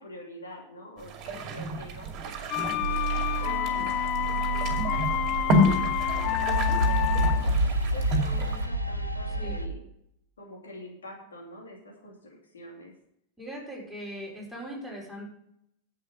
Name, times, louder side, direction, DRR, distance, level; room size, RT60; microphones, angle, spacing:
voice 1, 0.0-2.1 2.4-9.9 10.4-12.9, left 1 dB, 70° left, -1 dB, 2.9 m, -46 dB
sound 1, 1.0-8.7, left 1 dB, 35° right, 2.3 m, -30 dB
sound 2, 2.5-7.6, left 14 dB, 35° left, 0.4 m, -29 dB
sound 3, 2.8-9.7, right 1 dB, 90° right, 1.1 m, -29 dB
voice 2, 13.4-15.2, equal, ahead, -4 dB, 4.9 m, -39 dB
10.5 x 8.1 x 5.1 m, 0.72 s
figure-of-eight pair, 90°, 0 cm